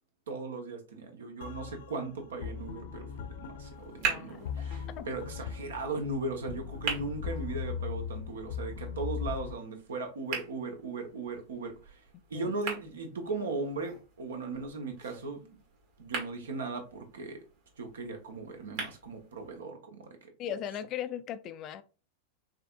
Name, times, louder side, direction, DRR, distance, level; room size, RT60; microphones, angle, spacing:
voice 1, 0.3-12.0 12.3-15.6 16.0-17.4 17.8-20.1 20.5-20.6, right 3 dB, 65° right, 1.1 m, -38 dB
sound 1, 1.4-9.5, left 7 dB, 60° left, 0.8 m, -39 dB
sound 2, 3.6-19.6, right 5 dB, 50° right, 1.9 m, -42 dB
voice 2, 4.0-5.1 12.3-12.5 20.4-21.8, left 10 dB, 35° left, 0.4 m, -39 dB
5.6 x 3.4 x 2.5 m
figure-of-eight pair, 90°, 0 cm